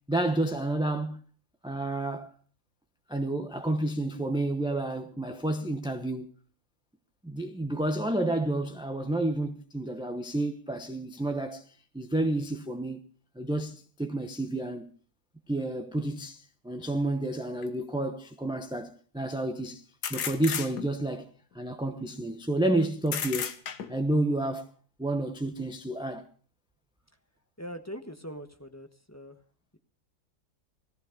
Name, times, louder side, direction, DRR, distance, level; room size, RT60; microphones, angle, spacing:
voice 1, 0.1-1.2 1.6-2.3 3.1-6.2 7.2-11.6 11.9-13.0 13.3-14.9 15.5-19.8 20.1-21.3 21.5-23.5 23.9-24.7 25.0-26.3, right 1 dB, 5° right, 0.7 m, -30 dB
sound 1, 17.6-17.7 20.0-21.1 23.1-24.1, left 7 dB, 80° left, 1.8 m, -33 dB
voice 2, 27.6-29.4, equal, 10° left, 1.1 m, -42 dB
18.0 x 15.0 x 5.1 m
omnidirectional pair, 1.7 m